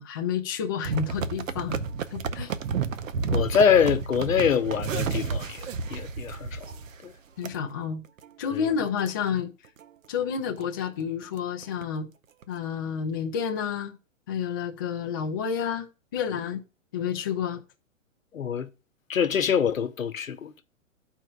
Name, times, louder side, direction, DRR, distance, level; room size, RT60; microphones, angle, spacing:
voice 1, 0.0-1.8 2.1-2.5 7.4-8.0 8.4-9.5 10.1-12.1 12.5-14.0 14.3-16.6 16.9-17.6, left 7 dB, 20° left, 0.3 m, -30 dB
sound 1, 0.8-7.1 7.4-7.6 8.0-8.3 8.7-8.8 9.0-9.1 9.6-9.9 10.2-10.3 10.6-10.7 11.0-11.8 12.4-12.5, right 5 dB, 75° right, 0.7 m, -31 dB
voice 2, 3.3-6.6 7.0-7.1 8.5-8.7 18.3-18.7 19.1-20.6, left 7 dB, 80° left, 0.9 m, -25 dB
13.0 x 4.5 x 2.4 m
hypercardioid pair, 125°, 39 cm